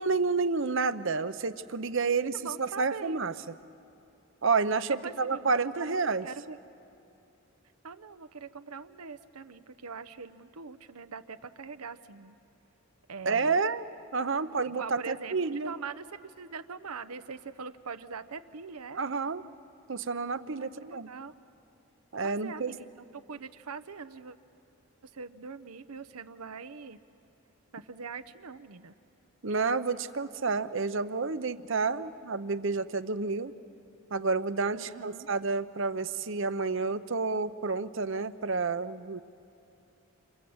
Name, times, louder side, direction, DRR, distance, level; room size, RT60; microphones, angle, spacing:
voice 1, 0.0-3.3 4.4-6.3 13.2-13.8 14.1-15.7 19.0-19.4 19.9-21.1 22.1-22.7 29.4-33.5 34.1-39.2, right 4 dB, 60° right, 13 dB, 0.8 m, -30 dB
voice 2, 2.2-3.2 4.9-6.0 6.2-6.6 7.8-12.4 13.1-13.6 14.6-19.0 20.6-21.3 22.2-24.4 25.0-27.0 27.7-28.9 34.7-35.3, right 5 dB, 85° right, 10 dB, 0.9 m, -42 dB
29.0 x 26.0 x 8.0 m, 2.7 s
head